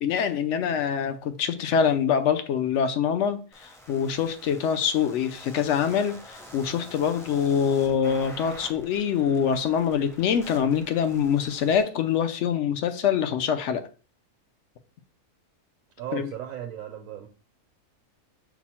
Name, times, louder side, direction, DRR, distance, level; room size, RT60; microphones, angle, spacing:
voice 1, 0.0-13.9 16.1-16.3, left 7 dB, 65° left, 0.8 m, -25 dB
sound 1, 3.5-11.8, equal, 5° left, 0.5 m, -47 dB
voice 2, 16.0-17.3, right 11 dB, 70° right, 1.0 m, -36 dB
6.0 x 2.1 x 4.2 m
omnidirectional pair, 1.6 m